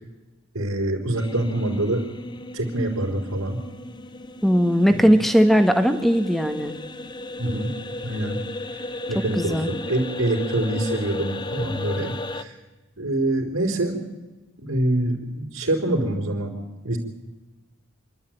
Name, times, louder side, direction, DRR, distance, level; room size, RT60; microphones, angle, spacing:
voice 1, 0.5-2.1 2.5-3.6 4.9-5.0 7.4-7.7 8.0-8.4 8.7-12.6 13.0-14.0 14.6-16.5 16.8-17.0, right 1 dB, 75° right, -4 dB, 3.9 m, -25 dB
sound 1, 1.2-12.4, left 2 dB, 20° left, 0.7 m, -35 dB
voice 2, 4.4-6.7 9.1-9.7, equal, ahead, 8 dB, 1.3 m, -19 dB
27.5 x 12.0 x 9.2 m, 1.2 s
head